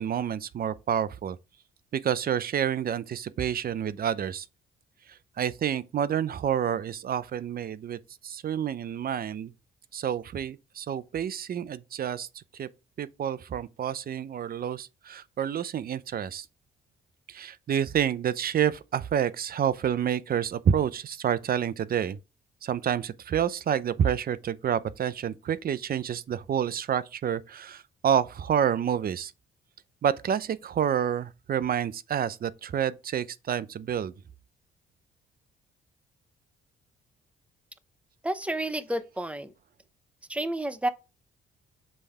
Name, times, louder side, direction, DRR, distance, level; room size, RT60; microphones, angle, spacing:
voice 1, 0.0-1.4 1.9-4.5 5.1-9.5 9.9-12.7 13.0-16.5 17.3-22.2 22.6-29.3 30.0-34.1, right 9 dB, 50° right, 0.6 m, -29 dB
voice 2, 38.2-39.5 40.3-40.9, right 1 dB, 5° right, 0.8 m, -30 dB
7.5 x 3.4 x 4.8 m
cardioid pair, 90°, 20 cm